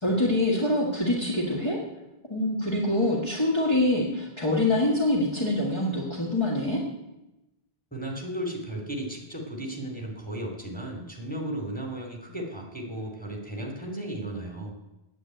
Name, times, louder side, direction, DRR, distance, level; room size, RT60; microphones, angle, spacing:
voice 1, 0.0-1.8 2.3-6.8, left 1 dB, 25° left, -4 dB, 1.8 m, -25 dB
voice 2, 7.9-14.7, right 1 dB, 10° left, 1 dB, 2.8 m, -35 dB
9.8 x 8.4 x 9.1 m, 0.97 s
omnidirectional pair, 1.1 m